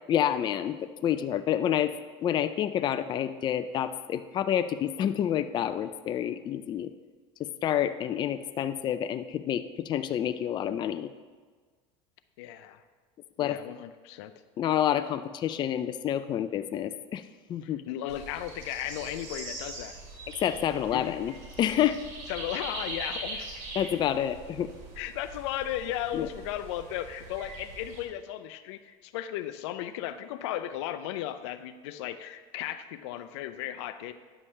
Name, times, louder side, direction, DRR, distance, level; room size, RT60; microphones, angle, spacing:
voice 1, 0.1-1.9 2.2-6.9 7.4-11.1 13.4-13.6 14.6-17.2 17.5-17.8 20.4-22.0 23.8-24.7 26.1-26.3, left 10 dB, 30° left, 11 dB, 0.4 m, -28 dB
voice 2, 12.4-12.8 13.4-14.3 17.6-20.0 20.9-21.2 22.3-23.6 25.0-34.1, left 12 dB, 85° left, 11 dB, 0.5 m, -35 dB
sound 1, 18.1-28.0, right 2 dB, 60° right, 2.8 m, -42 dB
9.8 x 7.2 x 3.3 m, 1.5 s
supercardioid pair, 120°, 14 cm